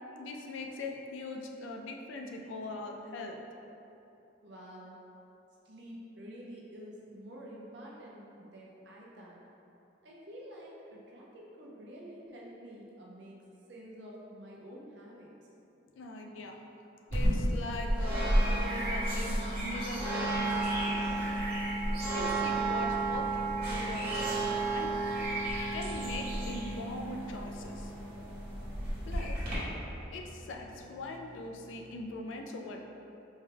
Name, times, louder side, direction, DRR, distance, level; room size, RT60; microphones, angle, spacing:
voice 1, 0.2-3.4 16.0-16.6 17.1-21.0 22.1-25.0 25.7-27.9 29.0-29.4 30.1-32.9, left 2 dB, 75° left, 2 dB, 0.4 m, -41 dB
voice 2, 4.4-5.0 5.6-9.4 10.0-13.4 13.7-15.3, equal, 60° right, -4 dB, 0.6 m, -48 dB
sound 1, 17.1-29.6, right 1 dB, 45° right, 1.1 m, -32 dB
sound 2, 17.4-21.3, equal, 35° left, 0.6 m, -46 dB
sound 3, 19.1-32.0, equal, 10° right, 0.5 m, -53 dB
4.4 x 2.3 x 3.4 m, 2.9 s
head